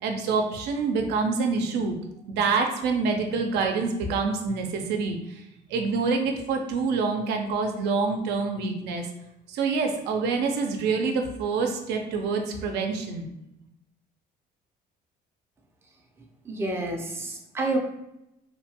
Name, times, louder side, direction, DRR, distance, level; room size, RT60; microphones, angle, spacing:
voice 1, 0.0-2.0 2.3-5.2 5.7-9.1 9.5-13.3, right 4 dB, 85° right, 4 dB, 0.4 m, -26 dB
voice 2, 16.5-17.8, right 2 dB, 15° right, 1 dB, 0.4 m, -29 dB
2.8 x 2.2 x 2.7 m, 0.85 s
cardioid pair, 110°, 17 cm